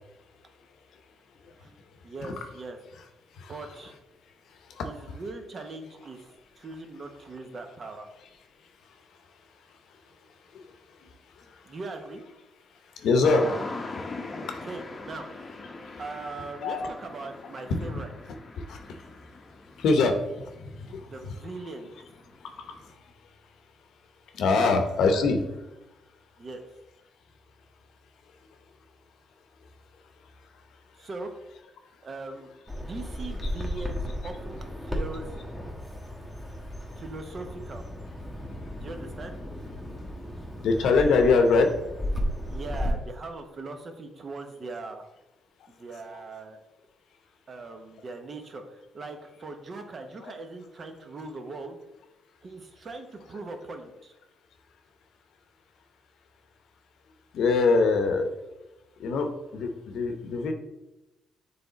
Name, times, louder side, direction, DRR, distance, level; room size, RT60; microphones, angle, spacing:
voice 1, 2.0-2.8 3.5-4.0 4.8-6.2 6.6-8.1 11.7-12.2 14.6-15.3 16.0-18.1 21.0-21.9 24.5-24.8 26.4-26.6 31.0-31.3 32.0-35.3 37.0-37.8 38.7-39.4 42.5-45.0 45.7-46.6 47.5-51.8 52.4-54.1, right 3 dB, 45° right, 5 dB, 0.8 m, -40 dB
voice 2, 3.3-3.7 4.5-5.2 8.8-9.0 9.9-10.0 10.5-11.8 12.8-14.7 15.8-16.0 16.6-16.9 17.7-17.8 18.5-19.0 19.8-21.5 22.4-23.1 24.3-25.6 33.4-33.5 40.6-41.7 46.1-46.2 50.2-50.3 57.3-58.3 59.0-60.5, left 4 dB, 75° left, 6 dB, 0.7 m, -26 dB
sound 1, 13.2-22.9, left 3 dB, 30° left, 0.7 m, -41 dB
Bird vocalization bird call bird song, 32.7-42.9, equal, 5° right, 1.1 m, -35 dB
6.8 x 3.5 x 4.0 m, 0.98 s
cardioid pair, 90°, 0 cm